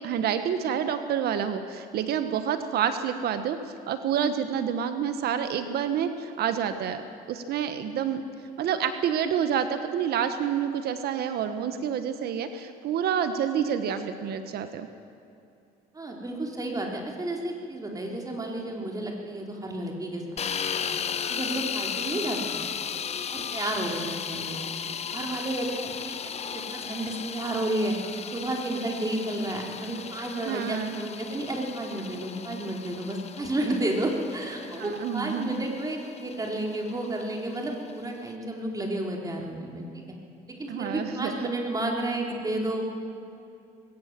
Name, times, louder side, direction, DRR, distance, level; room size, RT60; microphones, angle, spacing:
voice 1, 0.0-3.6 3.9-7.0 7.3-8.2 8.6-14.9 30.5-31.0 34.8-35.6 40.7-41.3, right 8 dB, 70° right, 9 dB, 1.3 m, -28 dB
voice 2, 15.9-20.4 20.8-20.9 21.3-22.6 23.3-24.6 25.1-28.0 28.3-40.0 40.6-42.9, right 1 dB, 20° right, 0 dB, 3.9 m, -31 dB
sound 1, 20.4-38.3, left 7 dB, 40° left, 0.9 m, -36 dB
21.0 x 17.5 x 7.6 m, 2.6 s
cardioid pair, 110°, 17 cm